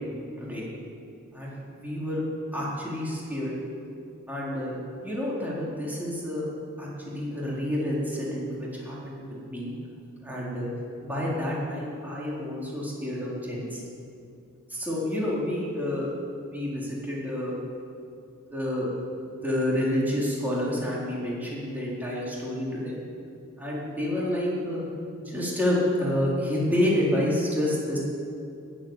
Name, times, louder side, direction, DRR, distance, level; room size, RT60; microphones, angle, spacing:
voice 1, 0.4-0.7 1.3-2.2 2.5-3.6 4.3-4.8 5.0-6.4 6.8-9.7 10.2-10.7 11.0-13.8 14.7-16.0 16.4-17.6 18.5-18.9 19.3-23.0 23.6-24.9 25.2-28.0, left 1 dB, 10° right, -6 dB, 3.9 m, -29 dB
19.0 x 8.5 x 9.0 m, 2.6 s
head